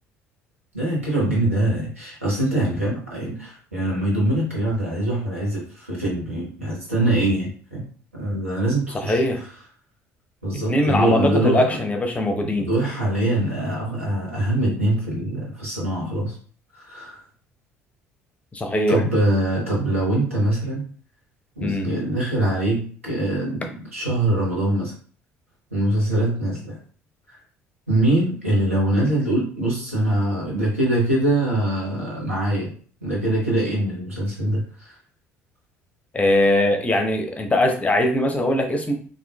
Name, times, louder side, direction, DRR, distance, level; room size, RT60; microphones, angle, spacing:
voice 1, 0.7-7.8 8.1-9.2 10.4-11.8 12.4-16.4 16.7-17.2 18.9-20.9 21.6-24.9 25.7-26.8 27.3-27.4 27.9-32.7 33.0-34.9, right 1 dB, 85° right, -5 dB, 1.0 m, -23 dB
voice 2, 9.0-9.4 10.7-12.7 18.5-19.0 21.6-21.9 36.1-38.9, left 1 dB, 20° left, 4 dB, 0.6 m, -21 dB
3.7 x 2.5 x 2.2 m, 0.44 s
figure-of-eight pair, 55°, 7 cm